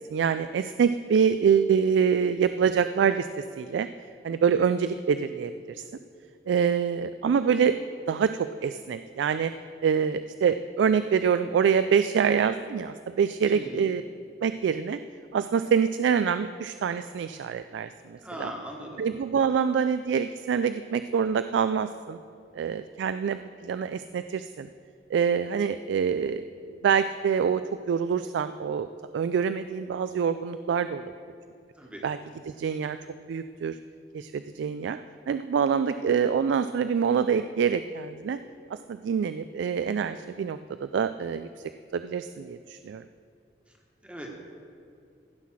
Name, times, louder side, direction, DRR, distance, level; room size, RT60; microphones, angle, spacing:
voice 1, 0.1-3.3 3.6-3.9 4.2-5.8 6.5-7.7 8.1-9.5 9.8-14.0 14.4-15.0 15.3-18.5 19.0-22.2 22.5-24.7 25.1-28.9 29.1-31.0 32.0-32.2 32.5-33.0 33.3-33.8 34.1-35.0 35.3-38.4 38.7-41.5 41.9-43.0, right 7 dB, 85° right, 11 dB, 0.3 m, -25 dB
voice 2, 13.5-13.8 18.2-19.0 31.8-32.0 44.0-44.3, equal, 5° right, 0 dB, 1.3 m, -39 dB
16.0 x 5.7 x 6.2 m, 2.5 s
head